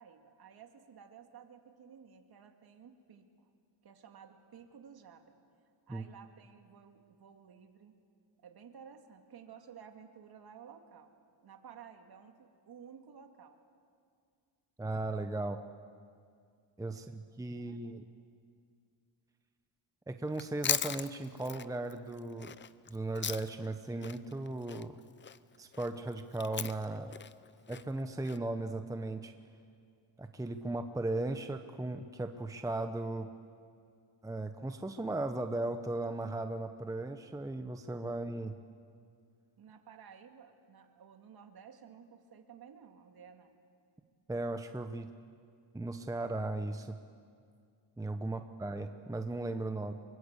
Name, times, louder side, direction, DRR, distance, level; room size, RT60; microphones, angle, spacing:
voice 1, 0.0-3.5 3.8-5.4 5.9-7.9 8.4-11.1 11.4-13.6 16.9-17.2 17.6-17.9 39.6-43.6 48.2-48.5, right 7 dB, 50° right, 4 dB, 2.4 m, -54 dB
voice 2, 14.8-15.6 16.8-18.0 20.1-22.5 22.9-25.0 25.6-27.2 27.7-29.3 30.2-33.3 34.2-38.5 44.3-45.1 45.7-47.0 48.0-49.9, right 2 dB, 5° right, 7 dB, 0.9 m, -37 dB
Chewing mastication, 20.3-23.7 24.0-28.4, left 7 dB, 25° left, 0.6 m, -38 dB
23.5 x 23.5 x 8.3 m, 2.2 s
cardioid pair, 115°, 48 cm